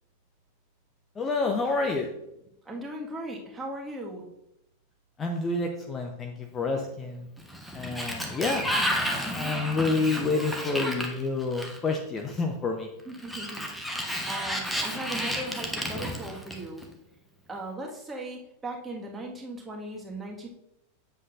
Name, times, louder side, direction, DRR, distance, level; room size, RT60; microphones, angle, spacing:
voice 1, 1.2-2.1 5.2-7.3 7.7-12.9, left 3 dB, 20° left, 2 dB, 0.8 m, -29 dB
voice 2, 2.7-4.2 13.1-16.9 17.5-20.5, right 1 dB, 15° right, -1 dB, 1.7 m, -38 dB
Sliding door, 7.4-12.0 13.1-16.8, equal, ahead, 1.1 m, -32 dB
8.0 x 7.6 x 2.6 m, 0.82 s
figure-of-eight pair, 90°, 0 cm